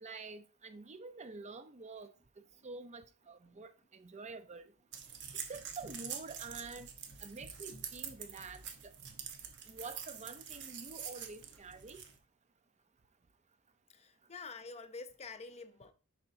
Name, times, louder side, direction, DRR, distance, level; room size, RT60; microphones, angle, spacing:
voice 1, 0.0-2.1 2.6-4.7 5.5-6.9 7.2-9.0 9.7-12.0, right 4 dB, 30° right, 0.6 m, -48 dB
sound 1, 4.9-12.2, right 7 dB, 55° right, 1.0 m, -46 dB
voice 2, 5.1-5.5 13.9-15.9, left 4 dB, 30° left, 0.6 m, -49 dB
7.0 x 5.6 x 2.7 m
head